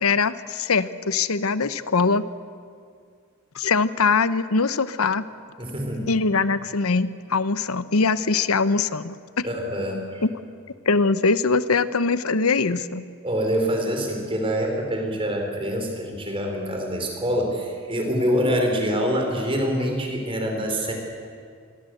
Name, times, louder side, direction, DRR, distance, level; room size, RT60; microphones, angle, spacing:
voice 1, 0.0-2.2 3.5-5.2 6.1-9.5 10.2-10.3 10.9-13.0, left 4 dB, 85° left, 14 dB, 0.9 m, -22 dB
voice 2, 5.6-6.1 9.4-10.2 13.2-20.9, equal, 25° right, 2 dB, 4.5 m, -25 dB
26.5 x 22.5 x 8.0 m, 2.2 s
head